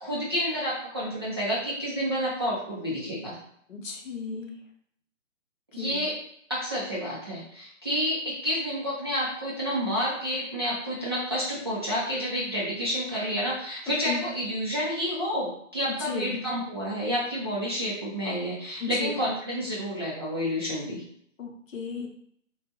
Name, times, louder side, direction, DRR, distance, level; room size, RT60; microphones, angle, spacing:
voice 1, 0.0-3.4 5.7-6.1 6.5-21.0, equal, 20° right, -8 dB, 0.5 m, -29 dB
voice 2, 3.7-4.6 5.7-6.0 14.1-14.2 16.0-16.4 18.8-19.2 21.4-22.1, left 5 dB, 80° left, 3 dB, 0.8 m, -34 dB
3.0 x 2.2 x 2.9 m, 0.67 s
hypercardioid pair, 155°, 39 cm